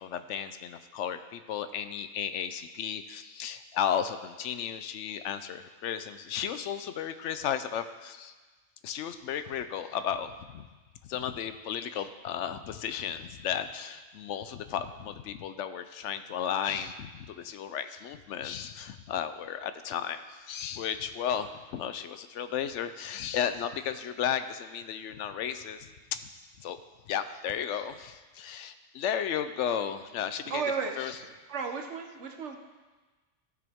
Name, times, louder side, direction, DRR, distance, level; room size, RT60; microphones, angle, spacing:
voice 1, 0.0-8.3 8.8-10.7 11.0-26.2 26.6-26.8 27.1-30.6 31.0-31.2, left 9 dB, 75° left, 11 dB, 0.9 m, -34 dB
voice 2, 30.5-31.0 31.5-32.6, right 5 dB, 70° right, 4 dB, 1.2 m, -33 dB
15.0 x 6.1 x 3.5 m, 1.3 s
omnidirectional pair, 1.3 m